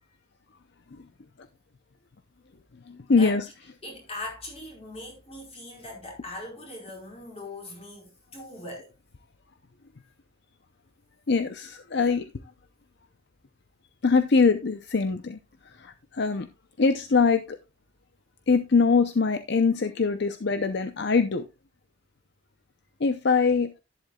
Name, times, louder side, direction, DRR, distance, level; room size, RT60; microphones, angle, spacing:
voice 1, 2.9-3.5 11.3-12.3 14.0-15.4 15.6-16.5 16.8-17.6 18.5-21.4 23.0-23.7, left 4 dB, 60° left, 0.6 m, -23 dB
voice 2, 3.8-8.9, left 2 dB, 30° left, 4.7 m, -40 dB
11.5 x 11.0 x 2.3 m
head